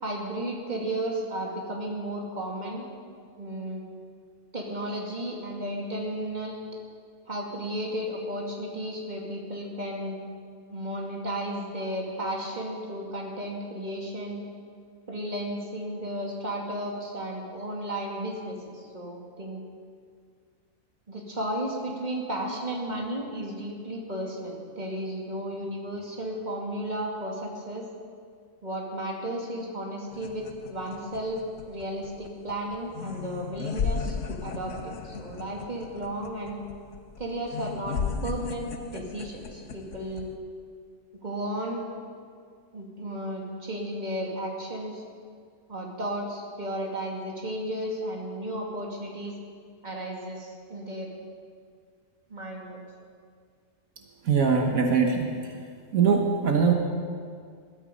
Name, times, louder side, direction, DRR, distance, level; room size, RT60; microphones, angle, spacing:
voice 1, 0.0-2.8 3.4-3.8 4.5-6.6 7.3-10.2 10.7-14.4 15.1-19.6 21.1-27.8 28.6-31.4 31.6-36.6 37.2-40.3 41.2-41.9 42.7-45.0 45.7-49.4 49.8-51.1 52.3-52.8, right 1 dB, 30° right, -1 dB, 2.6 m, -34 dB
sound 1, 30.1-40.3, left 5 dB, 65° left, 1.2 m, -36 dB
voice 2, 54.3-55.3 55.9-56.7, right 6 dB, 80° right, 2 dB, 1.8 m, -21 dB
20.0 x 13.0 x 5.3 m, 2.1 s
omnidirectional pair, 1.4 m